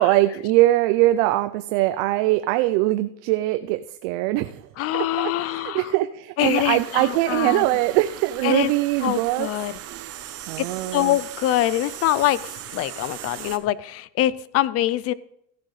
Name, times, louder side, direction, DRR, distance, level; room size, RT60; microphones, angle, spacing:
voice 1, 0.0-4.6 4.9-9.5 9.9-10.1 10.5-11.2, right 16 dB, 70° right, 10 dB, 0.6 m, -22 dB
voice 2, 4.8-5.9 6.4-7.6 8.4-8.7 9.0-9.7 10.6-10.7 10.9-15.1, left 14 dB, 45° left, 19 dB, 0.5 m, -24 dB
sound 1, 6.4-13.6, right 12 dB, 40° right, 0.9 m, -38 dB
15.0 x 10.5 x 3.2 m, 0.75 s
cardioid pair, 135°, 35 cm